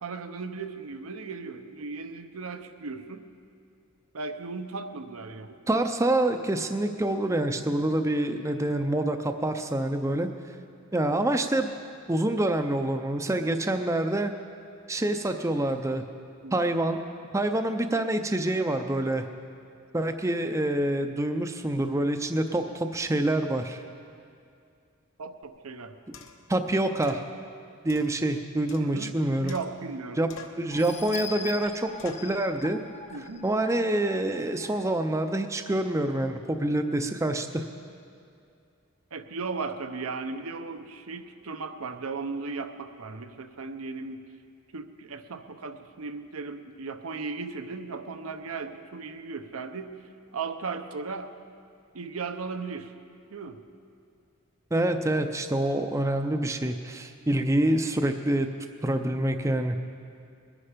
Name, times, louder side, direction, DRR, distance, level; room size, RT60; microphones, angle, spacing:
voice 1, 0.0-3.3 4.1-5.6 16.4-16.6 25.2-25.9 28.8-29.1 29.4-30.2 33.1-33.5 39.1-44.2 44.7-50.0 50.3-51.3 51.9-52.9 53.3-53.6, right 4 dB, 80° right, 7 dB, 0.8 m, -36 dB
voice 2, 5.7-10.3 10.9-11.7 12.1-14.3 14.9-16.0 16.5-17.0 17.3-19.3 19.9-23.8 26.5-27.2 27.8-29.5 30.2-30.3 30.6-32.8 33.4-37.6 54.7-58.5 58.8-59.8, right 1 dB, 15° right, 7 dB, 0.5 m, -26 dB
sound 1, 25.4-25.5 26.1-26.5 27.0-27.3 27.9-29.2 29.5-30.0 30.3-30.7 31.1-31.4 32.0-32.3, left 5 dB, 65° left, 1.0 m, -48 dB
sound 2, 30.7-35.2 35.7-35.8 36.1-36.2, left 5 dB, 30° left, 0.6 m, -42 dB
21.5 x 9.9 x 5.1 m, 2.4 s
head